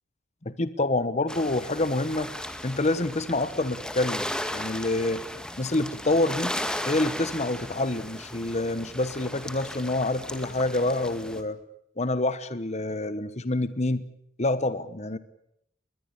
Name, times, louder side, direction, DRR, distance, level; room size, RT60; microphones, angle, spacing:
voice 1, 0.4-2.3 2.6-5.2 5.6-6.5 6.9-11.6 12.0-14.0 14.4-15.2, left 2 dB, 35° left, 13 dB, 1.2 m, -27 dB
sound 1, 1.3-11.4, left 1 dB, 5° left, 1.9 m, -36 dB
22.0 x 21.5 x 8.8 m, 0.74 s
head